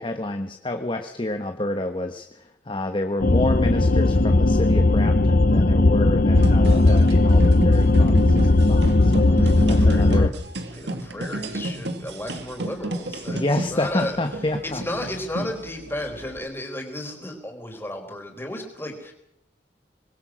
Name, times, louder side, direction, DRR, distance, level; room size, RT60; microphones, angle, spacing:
voice 1, 0.0-9.2 9.7-10.3 13.3-15.1, left 1 dB, 30° left, 6 dB, 1.2 m, -29 dB
sound 1, 3.2-10.3, left 2 dB, 55° left, 0.9 m, -17 dB
sound 2, 6.4-16.4, right 1 dB, 75° right, 2.3 m, -32 dB
voice 2, 9.2-10.3 10.7-14.2 14.6-19.1, left 1 dB, 15° left, 3 dB, 4.1 m, -34 dB
24.5 x 21.0 x 6.3 m, 0.75 s
head